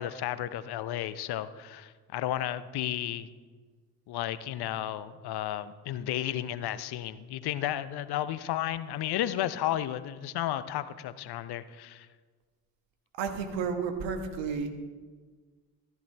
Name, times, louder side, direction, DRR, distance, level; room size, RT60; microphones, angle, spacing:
voice 1, 0.0-3.3 4.1-12.1, left 12 dB, 55° left, 14 dB, 0.7 m, -33 dB
voice 2, 13.2-14.7, right 5 dB, 70° right, 6 dB, 1.4 m, -32 dB
13.5 x 10.5 x 3.3 m, 1.5 s
hypercardioid pair, 45°, 46 cm